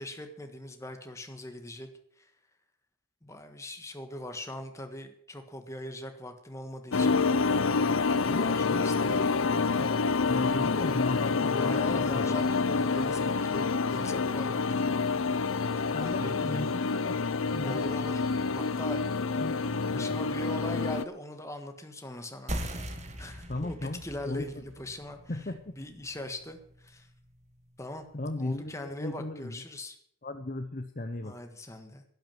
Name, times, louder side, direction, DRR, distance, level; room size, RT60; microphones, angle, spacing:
voice 1, 0.0-1.9 2.2-2.3 3.2-7.2 8.6-9.4 11.6-15.1 16.0-16.6 17.6-18.2 18.5-19.1 19.9-22.5 23.2-25.2 25.8-27.1 27.8-28.1 28.4-30.0 31.2-32.0, left 1 dB, 15° left, 6 dB, 1.6 m, -41 dB
sound 1, 6.9-21.0, left 4 dB, 70° left, 0.7 m, -28 dB
voice 2, 8.3-12.4 15.9-17.8 19.4-20.2 23.5-24.4 25.3-25.7 28.1-29.6 30.2-31.4, left 2 dB, 40° left, 6 dB, 0.9 m, -37 dB
sound 2, 22.5-27.6, equal, 35° right, 1.7 m, -41 dB
12.5 x 11.5 x 7.4 m, 0.67 s
head